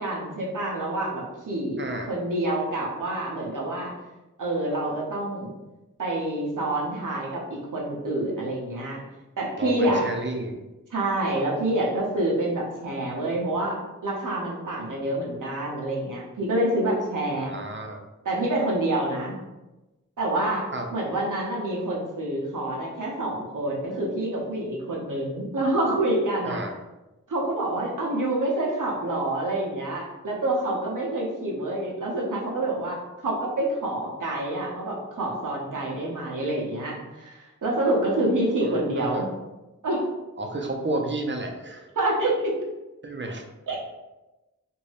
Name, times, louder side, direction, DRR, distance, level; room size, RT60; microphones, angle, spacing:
voice 1, 0.0-3.9 4.4-5.5 6.0-9.0 9.4-10.1 10.9-17.5 18.2-19.3 20.2-20.6 20.9-26.6 27.3-39.3 39.8-40.0 42.0-42.5 43.7-43.8, right 1 dB, 75° right, -3 dB, 0.7 m, -27 dB
voice 2, 1.8-2.1 9.6-10.6 17.3-18.0 20.7-20.9 26.4-26.7 38.6-39.2 40.4-41.9 43.0-43.4, right 2 dB, 35° right, 2 dB, 0.5 m, -32 dB
2.6 x 2.2 x 3.2 m, 1.0 s
wide cardioid pair, 50°, 32 cm